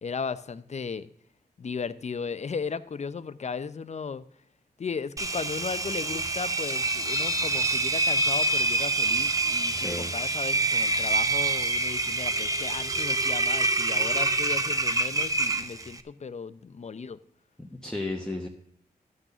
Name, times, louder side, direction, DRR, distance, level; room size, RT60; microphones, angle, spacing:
voice 1, 0.0-1.1 1.6-4.2 4.8-17.2, left 5 dB, 45° left, 14 dB, 0.6 m, -36 dB
Engine, 5.2-16.0, right 2 dB, 20° right, 0.7 m, -26 dB
voice 2, 9.7-10.1 17.6-18.5, left 2 dB, 5° left, 0 dB, 1.0 m, -34 dB
12.0 x 6.2 x 6.7 m, 0.70 s
wide cardioid pair, 100°, 17 cm